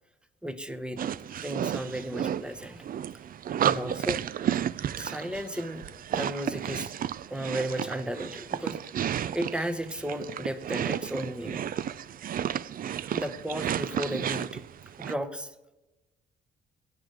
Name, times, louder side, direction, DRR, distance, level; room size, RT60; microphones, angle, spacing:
voice 1, 0.4-1.1 1.4-2.8 3.6-4.2 5.0-5.9 6.1-6.9 7.3-8.8 9.3-11.7 13.1-14.6 15.0-15.5, equal, 5° right, 8 dB, 1.0 m, -34 dB
sound 1, 1.0-15.1, right 10 dB, 45° right, 0.4 m, -32 dB
23.0 x 9.2 x 3.5 m, 1.1 s
cardioid pair, 90°, 20 cm